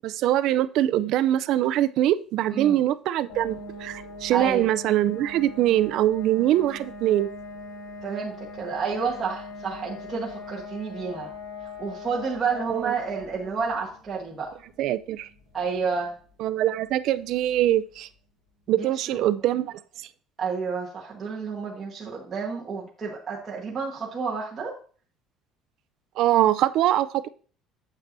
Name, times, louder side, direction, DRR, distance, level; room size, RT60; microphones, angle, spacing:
voice 1, 0.0-7.3 12.7-12.9 14.8-15.3 16.4-18.1 18.7-19.8 26.2-27.3, right 13 dB, 50° right, 0.4 m, -23 dB
sound 1, 3.3-17.9, left 2 dB, 80° left, 3.9 m, -42 dB
voice 2, 4.3-4.6 8.0-11.3 11.8-14.5 15.5-16.1 18.7-19.2 20.4-24.7, right 5 dB, 20° right, 1.3 m, -30 dB
8.7 x 7.3 x 2.6 m
cardioid pair, 180°, 0 cm